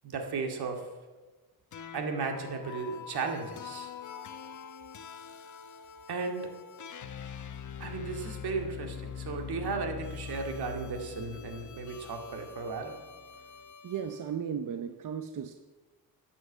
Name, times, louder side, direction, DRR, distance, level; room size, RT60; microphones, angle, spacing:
voice 1, 0.0-0.8 1.9-3.9 6.1-6.5 7.8-13.0, right 4 dB, 80° right, 3 dB, 2.2 m, -35 dB
sound 1, 1.7-14.2, left 7 dB, 50° left, 1.0 m, -44 dB
voice 2, 13.8-15.6, right 8 dB, 55° right, 8 dB, 0.8 m, -35 dB
13.5 x 8.7 x 7.4 m, 1.3 s
wide cardioid pair, 140°, 38 cm